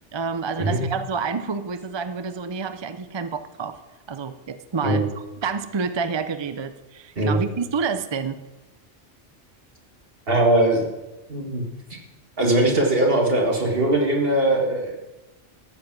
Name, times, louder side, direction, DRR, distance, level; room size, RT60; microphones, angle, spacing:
voice 1, 0.1-3.8 4.1-5.1 5.4-8.4, right 5 dB, 35° right, 10 dB, 0.4 m, -28 dB
voice 2, 10.3-10.8 11.3-11.6 12.4-15.0, right 1 dB, 55° right, 0 dB, 2.1 m, -20 dB
14.0 x 7.5 x 6.1 m, 1.0 s
omnidirectional pair, 1.2 m